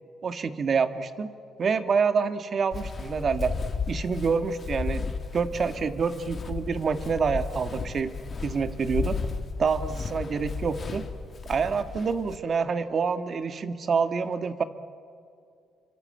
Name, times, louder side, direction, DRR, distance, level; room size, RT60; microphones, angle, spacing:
voice 1, 0.2-1.3 1.6-3.6 3.9-8.1 8.4-9.2 9.6-11.0 11.5-14.6, right 5 dB, 45° right, 9 dB, 1.7 m, -27 dB
Walk footsteps, 2.7-12.4, left 5 dB, 40° left, 2.3 m, -34 dB
27.0 x 24.5 x 8.9 m, 2.4 s
cardioid pair, 90°, 0 cm